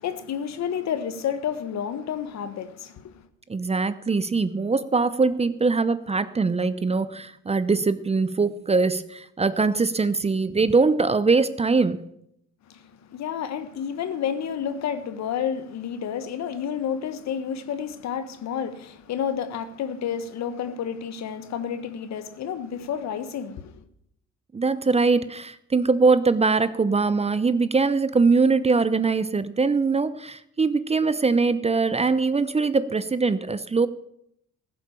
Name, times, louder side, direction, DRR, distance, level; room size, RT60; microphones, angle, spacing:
voice 1, 0.0-3.3 12.7-23.8, left 8 dB, 65° left, 1.3 m, -30 dB
voice 2, 3.5-12.0 24.5-33.9, right 4 dB, 20° right, 0.7 m, -22 dB
15.0 x 7.8 x 7.1 m
cardioid pair, 90°, 30 cm